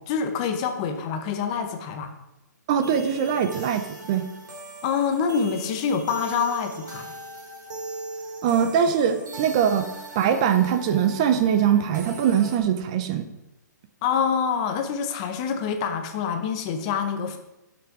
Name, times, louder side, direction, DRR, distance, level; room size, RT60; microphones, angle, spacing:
voice 1, 0.0-2.1 4.8-7.1 14.0-17.4, left 6 dB, 20° left, 7 dB, 0.7 m, -26 dB
voice 2, 2.7-4.3 8.4-9.9 10.2-13.3, right 8 dB, 20° right, 9 dB, 0.4 m, -22 dB
sound 1, 2.8-12.6, right 2 dB, 75° right, 3.5 m, -39 dB
11.5 x 5.9 x 4.7 m, 0.94 s
hypercardioid pair, 170°, 10 cm